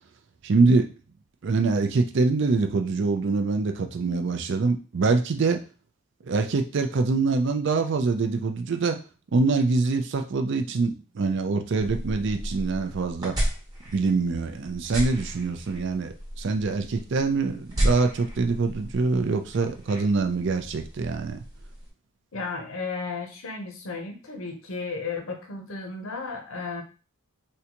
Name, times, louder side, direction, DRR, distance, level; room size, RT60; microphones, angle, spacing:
voice 1, 0.4-0.8 1.4-5.6 6.3-9.0 9.3-13.3 13.9-21.4, right 3 dB, 55° right, 6 dB, 0.4 m, -24 dB
sound 1, 11.8-21.9, equal, 20° right, 1.0 m, -33 dB
voice 2, 22.3-26.8, left 4 dB, 70° left, 3 dB, 0.7 m, -34 dB
3.7 x 2.2 x 2.9 m, 0.34 s
head